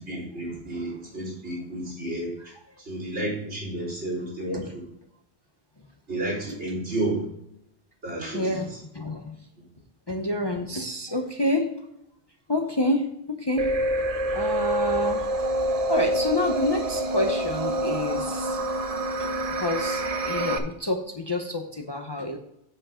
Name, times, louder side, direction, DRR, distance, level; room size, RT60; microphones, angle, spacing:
voice 1, 0.0-2.3 2.8-4.6 6.1-7.2 8.0-8.5, right 1 dB, 75° right, -3 dB, 4.2 m, -31 dB
voice 2, 8.3-9.5 10.1-11.7 12.5-13.7 14.3-15.3 15.9-18.6 19.2-22.4, left 1 dB, 25° left, 3 dB, 0.7 m, -28 dB
sound 1, 13.6-20.6, right 1 dB, 40° right, 0.7 m, -27 dB
7.8 x 7.5 x 3.7 m, 0.79 s
omnidirectional pair, 1.2 m